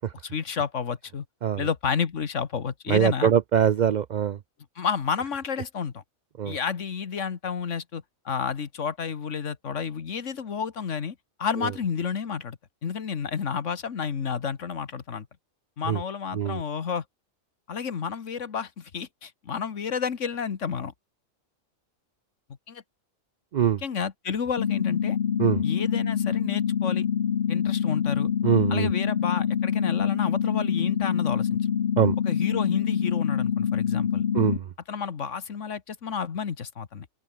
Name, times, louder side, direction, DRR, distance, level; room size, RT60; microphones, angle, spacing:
voice 1, 0.2-1.3 1.6-3.3 4.8-6.0 6.5-15.3 15.8-17.0 17.7-20.9 22.7-22.8 23.6-25.2 25.6-27.1 27.5-28.3 28.7-31.6 32.3-34.3 34.9-37.1, left 6 dB, 70° left, 1.7 m, -31 dB
voice 2, 2.9-4.4 6.4-6.6 15.9-16.0 16.3-16.6 23.5-23.8 25.4-25.6 28.4-28.9 32.0-32.1 34.3-34.6, right 9 dB, 80° right, 0.4 m, -22 dB
sound 1, 24.6-34.6, left 8 dB, 50° left, 0.9 m, -25 dB
open air
omnidirectional pair, 1.4 m